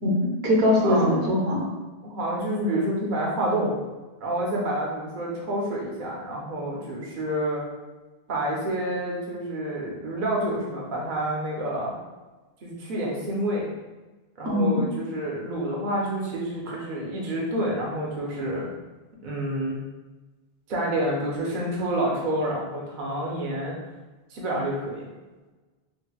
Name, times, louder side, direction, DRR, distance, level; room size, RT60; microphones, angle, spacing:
voice 1, 0.0-1.6 14.4-14.8, left 1 dB, 75° right, -3 dB, 1.0 m, -22 dB
voice 2, 0.8-1.1 2.0-3.8 4.2-7.6 8.3-12.0 12.6-13.7 14.4-18.7 19.2-19.8 20.7-23.8 24.3-25.1, right 1 dB, 55° right, -3 dB, 0.7 m, -28 dB
4.4 x 2.0 x 2.3 m, 1.2 s
omnidirectional pair, 1.1 m